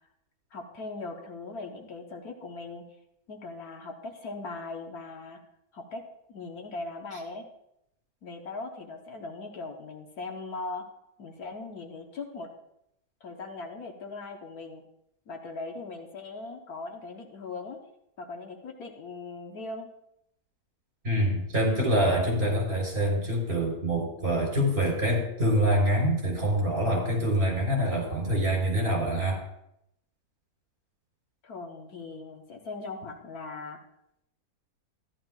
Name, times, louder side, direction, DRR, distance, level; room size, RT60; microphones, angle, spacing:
voice 1, 0.5-2.8 3.3-5.4 5.7-6.0 6.3-7.4 8.2-10.8 11.2-12.5 13.2-14.8 15.3-17.8 18.2-19.9 31.4-33.8, left 3 dB, 65° left, 2 dB, 1.5 m, -39 dB
voice 2, 21.0-29.4, equal, 40° right, -2 dB, 3.9 m, -25 dB
14.5 x 11.0 x 2.3 m, 0.79 s
omnidirectional pair, 1.7 m